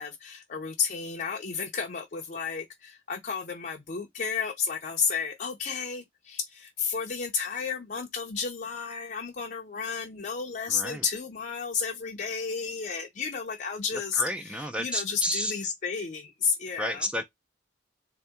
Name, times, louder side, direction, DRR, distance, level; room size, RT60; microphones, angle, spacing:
voice 1, 0.0-17.1, left 6 dB, 50° left, 0.6 m, -32 dB
voice 2, 10.7-11.0 14.2-15.5 16.8-17.2, equal, 5° right, 0.4 m, -31 dB
3.4 x 2.8 x 3.5 m
head